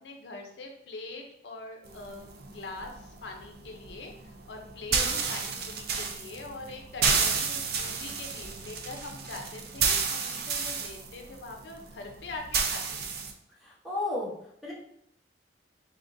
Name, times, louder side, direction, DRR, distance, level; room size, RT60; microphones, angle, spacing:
voice 1, 0.0-12.8, left 3 dB, 65° left, 2 dB, 0.5 m, -43 dB
sound 1, 1.9-13.3, right 5 dB, 60° right, 0.5 m, -31 dB
voice 2, 13.6-14.7, left 2 dB, ahead, -6 dB, 1.0 m, -34 dB
3.6 x 3.6 x 2.6 m, 0.70 s
head